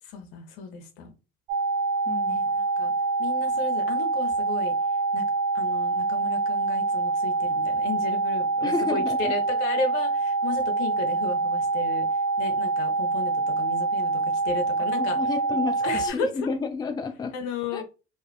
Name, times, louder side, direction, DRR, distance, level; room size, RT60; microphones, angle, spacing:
voice 1, 0.1-1.1 2.3-2.9 3.2-4.7 5.1-5.2 5.5-15.2 15.8-16.3 17.3-17.8, left 4 dB, 75° left, 0.7 m, -34 dB
sound 1, 1.5-16.1, right 3 dB, 75° right, 0.5 m, -25 dB
voice 2, 2.1-2.4 8.6-9.3 15.0-17.3 17.7-17.8, left 4 dB, 15° left, 0.4 m, -31 dB
2.5 x 2.3 x 2.2 m
hypercardioid pair, 55°, 32 cm